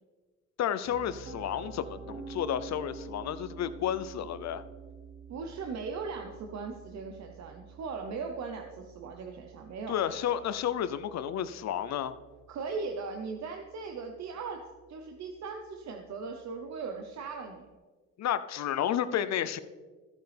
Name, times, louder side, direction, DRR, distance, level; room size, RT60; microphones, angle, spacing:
voice 1, 0.6-4.6 9.9-12.1 18.2-19.6, left 10 dB, 65° left, 13 dB, 0.6 m, -31 dB
Piano, 0.9-12.8, right 5 dB, 45° right, 1.6 m, -48 dB
voice 2, 5.3-10.0 12.5-17.7, right 4 dB, 60° right, 4 dB, 0.9 m, -38 dB
14.0 x 8.0 x 3.4 m, 1.4 s
cardioid pair, 90°, 30 cm